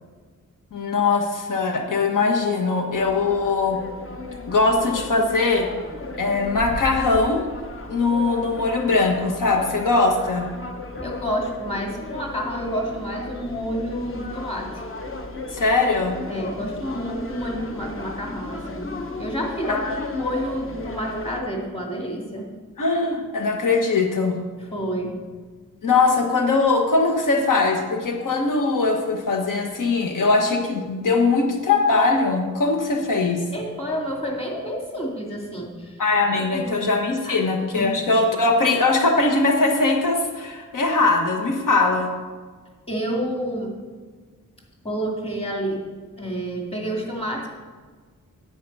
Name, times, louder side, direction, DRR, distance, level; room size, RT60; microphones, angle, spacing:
voice 1, 0.7-3.8 4.5-5.7 6.2-7.5 7.9-10.5 15.5-16.1 19.7-20.0 22.8-24.4 25.8-33.4 36.0-42.1, left 3 dB, 75° left, 2 dB, 1.3 m, -21 dB
sound 1, 2.9-21.4, left 2 dB, 40° left, 1.0 m, -35 dB
voice 2, 11.0-14.8 16.3-18.9 19.2-22.5 24.6-25.2 33.5-36.0 36.5-36.7 37.2-37.4 37.7-37.9 42.9-43.7 44.8-45.8 46.2-47.5, equal, 20° left, -1 dB, 2.3 m, -29 dB
10.5 x 8.7 x 5.5 m, 1.5 s
wide cardioid pair, 125°, 32 cm